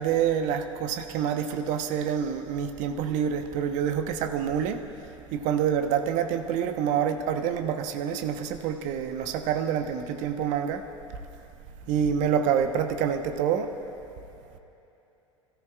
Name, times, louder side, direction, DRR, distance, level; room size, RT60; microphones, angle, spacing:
voice 1, 0.0-10.9 11.9-13.8, right 8 dB, 50° right, 6 dB, 1.0 m, -27 dB
28.0 x 14.0 x 2.4 m, 2.9 s
figure-of-eight pair, 75°, 17 cm